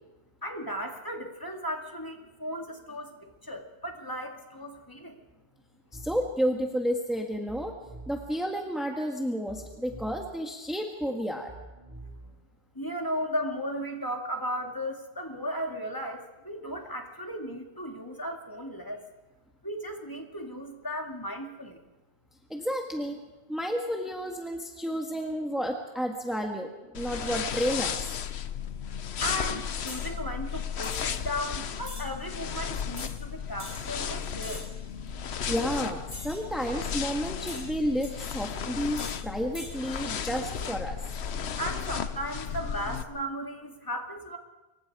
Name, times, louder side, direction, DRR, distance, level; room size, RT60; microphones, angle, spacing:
voice 1, 0.4-5.2 12.7-19.0 19.6-21.8 29.2-34.6 41.6-44.4, equal, 20° left, 2 dB, 2.5 m, -35 dB
voice 2, 5.9-7.8 8.1-11.5 22.5-23.2 23.5-28.1 35.5-41.0, equal, ahead, 2 dB, 1.6 m, -31 dB
sound 1, 5.9-6.3 7.5-8.3 9.5-10.3 11.5-12.3, right 2 dB, 15° right, 5.5 m, -45 dB
sound 2, 26.9-43.0, left 7 dB, 85° left, 1.1 m, -34 dB
sound 3, 29.9-30.1 30.8-31.2 31.8-32.1 33.0-33.2 33.6-33.8 34.4-34.8 36.1-36.5 37.5-38.1 38.9-39.2 39.5-39.7, left 1 dB, 40° left, 4.4 m, -43 dB
26.0 x 24.0 x 4.9 m, 1.1 s
omnidirectional pair, 1.1 m